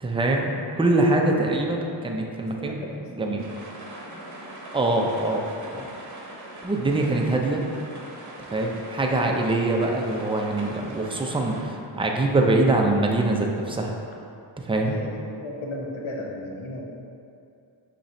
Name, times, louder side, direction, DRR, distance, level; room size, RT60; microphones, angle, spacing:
voice 1, 0.0-2.8 3.1-3.5 4.7-5.4 5.7-5.9 6.6-7.6 8.5-14.0 14.6-15.0, right 2 dB, 10° right, 1 dB, 0.5 m, -23 dB
voice 2, 2.6-3.4 14.8-16.8, left 2 dB, 75° left, -1 dB, 0.8 m, -35 dB
sound 1, 3.4-11.6, right 1 dB, 40° right, 0.9 m, -41 dB
5.4 x 3.0 x 2.6 m, 2.5 s
cardioid pair, 50°, 48 cm